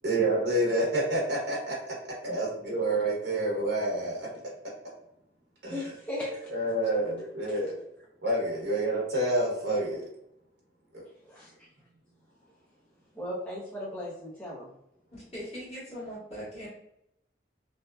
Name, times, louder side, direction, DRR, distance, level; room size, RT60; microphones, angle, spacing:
voice 1, 0.0-4.3 5.6-5.8 6.5-7.8 8.2-10.1 10.9-11.0, right 1 dB, 75° right, -3 dB, 0.7 m, -28 dB
voice 2, 5.7-6.5 7.5-7.6 11.2-11.5 13.1-14.7, left 1 dB, 10° left, -8 dB, 0.6 m, -37 dB
voice 3, 15.1-16.7, equal, 35° left, -8 dB, 1.3 m, -40 dB
2.6 x 2.1 x 2.3 m, 0.80 s
head